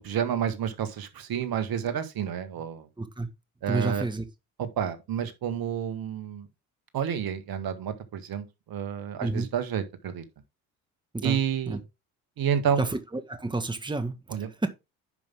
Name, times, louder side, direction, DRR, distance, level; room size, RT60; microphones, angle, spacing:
voice 1, 0.0-2.9 3.6-4.0 4.6-6.5 6.9-10.2 11.2-11.8 12.4-12.9 14.3-14.7, right 8 dB, 55° right, 1.8 m, -30 dB
voice 2, 3.0-3.3 3.7-4.2 9.2-9.5 11.1-11.4 11.7-11.8 12.8-13.0 13.3-14.7, right 2 dB, 10° right, 1.6 m, -30 dB
10.5 x 5.3 x 3.6 m
hypercardioid pair, 60°, 42 cm